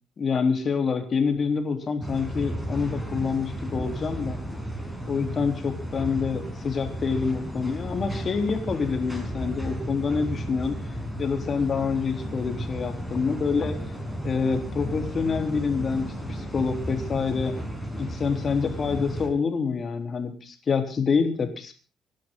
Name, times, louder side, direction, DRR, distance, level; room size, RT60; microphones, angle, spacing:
voice 1, 0.2-4.4 5.1-10.8 11.2-13.8 14.2-17.5 18.0-21.7, left 5 dB, 40° left, 6 dB, 3.6 m, -27 dB
sound 1, 2.0-19.3, equal, ahead, 5.5 m, -33 dB
26.5 x 12.0 x 3.9 m, 0.34 s
cardioid pair, 125°, 0 cm